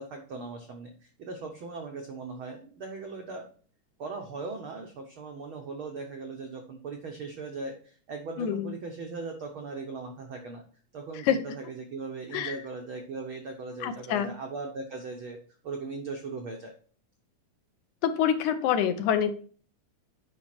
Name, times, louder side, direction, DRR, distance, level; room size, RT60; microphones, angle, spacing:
voice 1, 0.0-3.5 4.0-10.6 10.9-15.4 15.6-16.7, right 3 dB, 75° right, 2 dB, 1.2 m, -39 dB
voice 2, 8.4-8.7 11.2-11.4 12.3-12.6 13.8-14.3 18.0-19.3, left 9 dB, 75° left, 9 dB, 2.1 m, -26 dB
9.0 x 5.5 x 4.3 m, 0.42 s
omnidirectional pair, 3.7 m